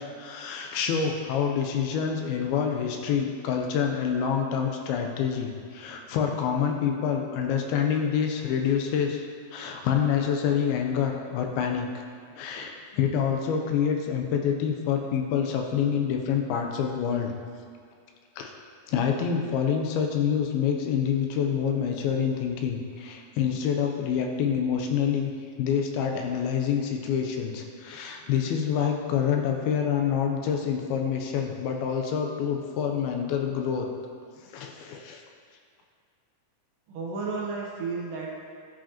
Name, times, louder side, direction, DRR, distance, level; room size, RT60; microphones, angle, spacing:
voice 1, 0.0-9.3 9.5-11.9 12.3-17.3 18.4-18.5 18.9-25.3 25.6-33.9 34.4-35.2, left 7 dB, 80° left, 3 dB, 2.5 m, -27 dB
voice 2, 36.9-38.3, right 4 dB, 70° right, -4 dB, 2.4 m, -32 dB
13.5 x 4.9 x 2.9 m, 2.2 s
omnidirectional pair, 4.4 m